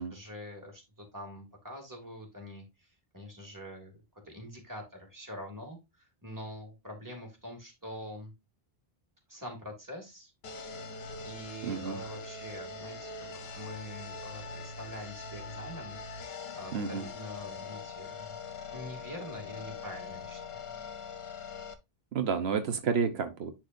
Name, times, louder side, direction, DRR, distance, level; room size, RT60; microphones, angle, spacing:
voice 1, 0.0-3.9 4.2-8.3 9.3-10.3 11.2-16.0 16.5-18.4 18.7-20.8 22.7-22.9, left 1 dB, 20° right, 2.4 m, -45 dB
sound 1, 10.4-21.7, left 4 dB, 80° left, 1.1 m, -42 dB
voice 2, 11.6-12.0 16.7-17.0 22.1-23.5, right 6 dB, 85° right, 1.2 m, -30 dB
10.5 x 4.5 x 2.6 m
omnidirectional pair, 1.0 m